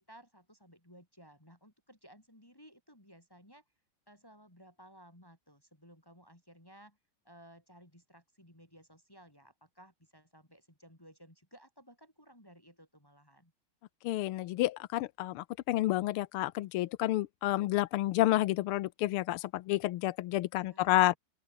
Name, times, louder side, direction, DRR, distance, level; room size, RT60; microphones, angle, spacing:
voice 1, 0.0-3.6 4.1-7.0 7.2-13.5 20.6-21.2, equal, 10° left, 4.7 m, -58 dB
voice 2, 14.0-21.1, left 16 dB, 80° left, 1.6 m, -30 dB
open air
omnidirectional pair, 2.4 m